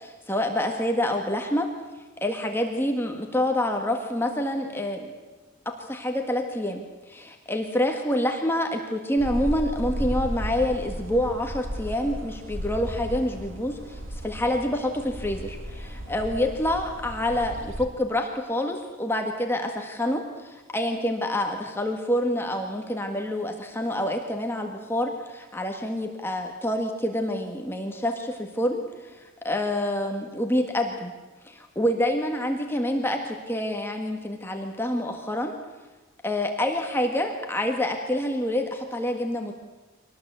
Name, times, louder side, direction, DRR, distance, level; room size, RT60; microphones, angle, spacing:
voice 1, 0.0-1.7 2.2-5.1 5.7-31.1 31.5-35.5 36.2-39.5, left 1 dB, 10° left, 3 dB, 1.7 m, -27 dB
sound 1, 9.2-17.9, equal, 65° right, 2.1 m, -34 dB
24.5 x 18.5 x 8.2 m, 1.2 s
head